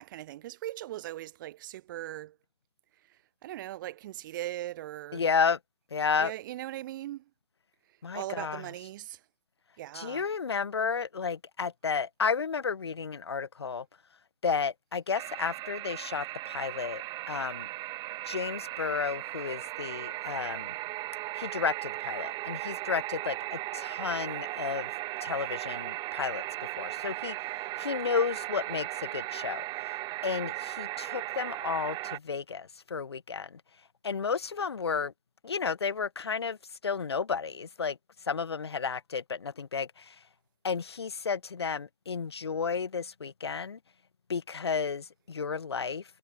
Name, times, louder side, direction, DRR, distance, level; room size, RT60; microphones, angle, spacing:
voice 1, 0.0-2.4 3.1-5.3 6.2-7.2 8.1-9.2 9.8-10.3, right 14 dB, 50° right, 2.5 m, -39 dB
voice 2, 5.1-5.6 5.9-6.3 8.0-8.6 9.9-13.8 14.4-17.0 17.3-17.7 18.2-20.7 21.4-24.9 25.2-26.4 26.8-27.4 27.8-29.6 30.2-33.6 34.0-35.1 35.4-36.6 36.8-38.0 38.3-40.1 40.6-43.8 44.3-46.0, left 5 dB, 80° left, 1.5 m, -32 dB
sound 1, 15.1-32.2, right 20 dB, 30° right, 3.8 m, -37 dB
figure-of-eight pair, 115°, 13 cm